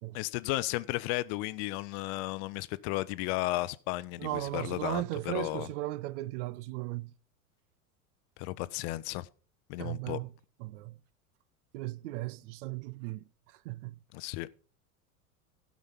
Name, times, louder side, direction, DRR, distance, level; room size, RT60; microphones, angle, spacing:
voice 1, 0.1-5.7 8.4-9.3 9.7-10.2 14.1-14.5, left 19 dB, 50° left, 0.6 m, -34 dB
voice 2, 4.2-7.1 9.8-10.3 10.6-11.0 11.7-14.0, right 17 dB, 55° right, 0.6 m, -37 dB
12.0 x 6.3 x 5.6 m
hypercardioid pair, 85°, 44 cm